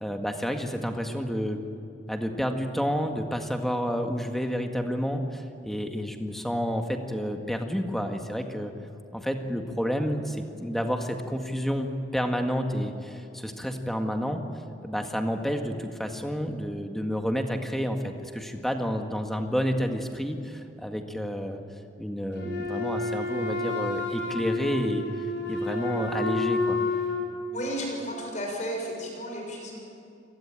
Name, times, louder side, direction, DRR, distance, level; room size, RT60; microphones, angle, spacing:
voice 1, 0.0-1.6 2.1-8.7 9.1-14.4 14.8-21.6 22.0-25.1 25.5-26.8, equal, ahead, 4 dB, 1.8 m, -30 dB
Wind instrument woodwind instrument, 22.3-27.2, left 3 dB, 80° left, 6.3 m, -29 dB
voice 2, 27.5-29.8, equal, 40° left, 0 dB, 6.3 m, -33 dB
29.0 x 18.5 x 9.0 m, 2.6 s
head